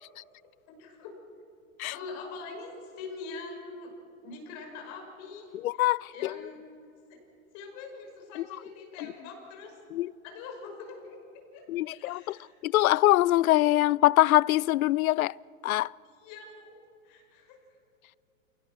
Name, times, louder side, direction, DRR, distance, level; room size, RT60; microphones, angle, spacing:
voice 1, 0.7-1.1 1.9-3.9 4.2-5.8 6.1-6.6 7.1-7.2 7.5-9.8 10.2-11.2 11.5-11.6 11.9-12.5 16.1-17.6, left 4 dB, 45° left, 5.7 m, -43 dB
voice 2, 5.5-6.4 8.4-8.5 9.0-9.1 9.9-10.1 11.7-12.4 12.6-15.4 15.6-15.9, left 16 dB, 80° left, 0.5 m, -24 dB
28.5 x 18.0 x 6.2 m
hypercardioid pair, 130°, 42 cm